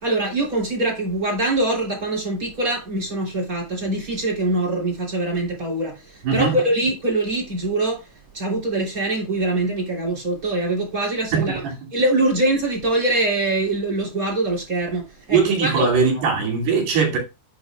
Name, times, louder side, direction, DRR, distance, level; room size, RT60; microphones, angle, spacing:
voice 1, 0.0-8.0 8.3-11.6 11.9-15.9 16.7-16.8, right 2 dB, 20° right, 3.0 m, -23 dB
voice 2, 6.2-6.6 11.3-11.9 15.3-17.2, right 5 dB, 65° right, 4.7 m, -20 dB
9.4 x 8.7 x 2.4 m
omnidirectional pair, 5.3 m